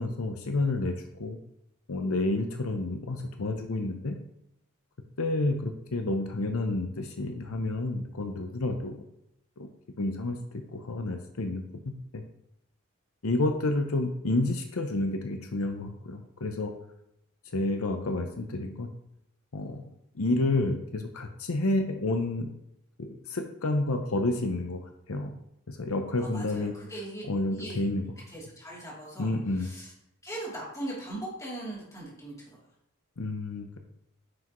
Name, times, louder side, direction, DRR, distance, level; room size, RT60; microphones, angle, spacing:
voice 1, 0.0-1.4 1.9-4.2 5.2-9.0 9.6-9.7 10.0-10.4 10.7-12.2 13.2-16.7 17.5-18.9 19.5-19.8 20.1-22.5 23.0-25.3 25.7-26.7 27.3-28.0 29.2-29.7 33.2-33.8, left 2 dB, 75° left, 5 dB, 0.8 m, -30 dB
voice 2, 26.2-27.2 27.5-27.8 28.3-29.9 30.2-32.7, right 1 dB, 15° left, -6 dB, 3.1 m, -40 dB
9.6 x 6.0 x 3.1 m, 0.80 s
head